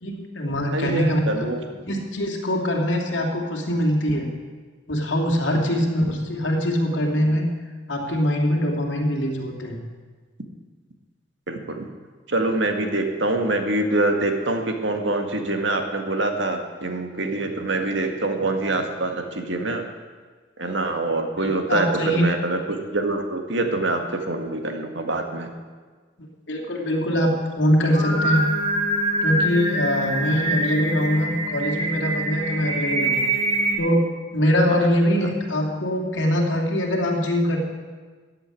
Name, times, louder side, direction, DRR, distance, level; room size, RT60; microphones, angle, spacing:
voice 1, 0.0-1.2 1.9-4.3 4.9-7.5 7.9-9.8 21.4-22.3 26.5-28.4 29.2-33.3 33.8-37.6, equal, 65° left, 1 dB, 2.7 m, -23 dB
voice 2, 0.7-1.6 11.5-11.9 12.3-19.8 20.6-22.6 22.9-25.5 34.7-34.8, right 2 dB, 65° right, 4 dB, 1.9 m, -25 dB
Singing, 27.8-33.7, right 1 dB, 30° right, 3.2 m, -25 dB
14.0 x 8.1 x 9.7 m, 1.4 s
head